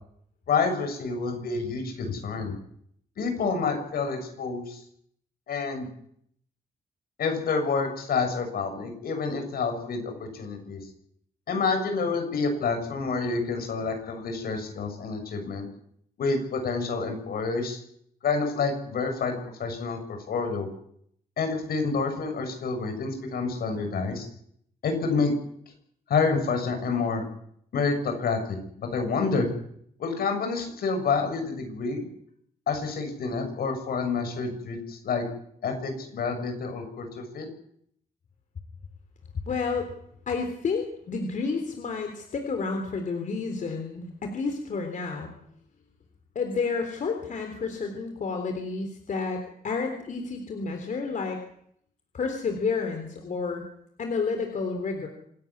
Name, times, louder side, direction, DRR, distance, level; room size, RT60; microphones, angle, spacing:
voice 1, 0.5-2.5 3.2-4.8 5.5-5.9 7.2-10.8 11.5-15.7 16.2-17.8 18.2-20.7 21.4-24.3 24.8-25.3 26.1-27.2 27.7-29.5 30.0-32.1 32.7-35.2 35.6-37.5, left 4 dB, 80° left, 5 dB, 6.9 m, -28 dB
voice 2, 39.5-39.9 40.3-45.3 46.4-51.4 52.1-53.6 54.0-55.1, left 4 dB, 55° left, 5 dB, 3.6 m, -30 dB
27.0 x 13.5 x 9.8 m, 0.69 s
wide cardioid pair, 125°, 16 cm